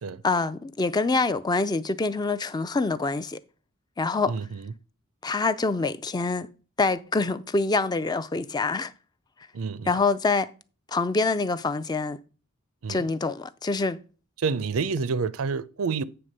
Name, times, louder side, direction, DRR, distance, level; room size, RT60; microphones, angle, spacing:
voice 1, 0.2-3.4 4.0-4.4 5.2-6.5 6.8-8.9 9.9-10.5 10.9-12.2 12.9-14.0, left 3 dB, 20° left, 0.4 m, -25 dB
voice 2, 4.3-4.6 9.5-9.9 12.8-13.1 14.4-16.0, right 5 dB, 80° right, 0.5 m, -28 dB
8.9 x 3.4 x 6.5 m
head